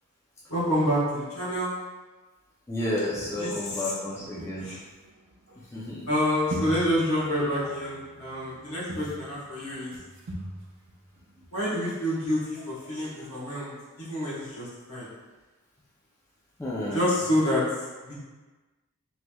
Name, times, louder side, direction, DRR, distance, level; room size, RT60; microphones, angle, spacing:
voice 1, 0.5-1.8 3.4-4.2 4.6-4.8 6.1-10.0 11.5-15.1 16.9-17.7 18.0-18.1, equal, 65° left, -7 dB, 1.0 m, -28 dB
voice 2, 2.7-4.7 5.7-6.0 16.6-17.1, left 1 dB, 10° left, -7 dB, 0.4 m, -31 dB
sound 1, 4.4-5.8 6.5-11.5 11.9-12.0 12.2-12.3 12.6-12.7 12.9-13.3, right 1 dB, 60° right, 0.5 m, -40 dB
3.2 x 3.0 x 2.2 m, 1.2 s
head